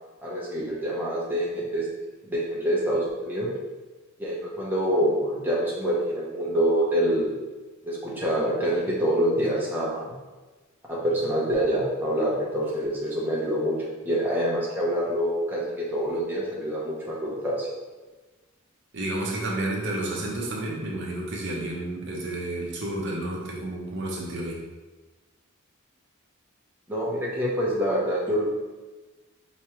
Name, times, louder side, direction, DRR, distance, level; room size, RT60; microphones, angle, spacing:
voice 1, 0.2-1.9 2.3-3.5 4.2-7.3 7.8-10.1 10.9-13.7 14.0-17.7 26.9-28.6, equal, 10° right, -6 dB, 0.9 m, -26 dB
voice 2, 18.9-24.6, right 1 dB, 55° right, -3 dB, 0.8 m, -31 dB
4.7 x 3.0 x 3.0 m, 1.2 s
head